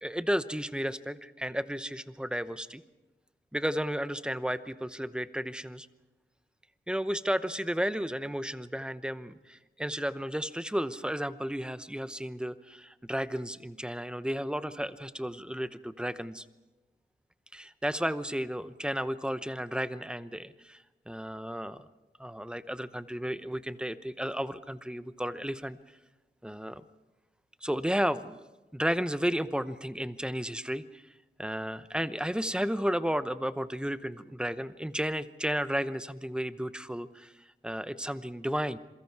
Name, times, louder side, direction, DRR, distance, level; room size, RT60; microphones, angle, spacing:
voice 1, 0.0-2.8 3.5-5.9 6.9-16.5 17.5-21.9 22.2-25.8 26.4-26.8 27.6-28.5 28.7-31.0 31.4-37.3 37.6-38.8, equal, 5° right, 13 dB, 0.8 m, -33 dB
27.5 x 22.5 x 4.7 m, 1.1 s
wide cardioid pair, 85°, 21 cm